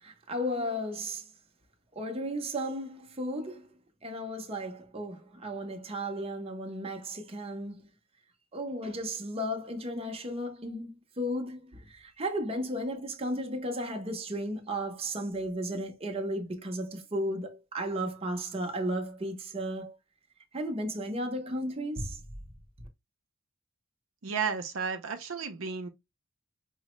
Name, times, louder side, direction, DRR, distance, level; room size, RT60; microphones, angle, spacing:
voice 1, 0.0-1.2 2.0-3.7 4.0-7.9 8.5-19.9 20.5-22.2, equal, 25° right, 0.7 m, -34 dB
voice 2, 24.2-25.9, right 5 dB, 65° right, 0.6 m, -33 dB
4.7 x 2.1 x 3.0 m
head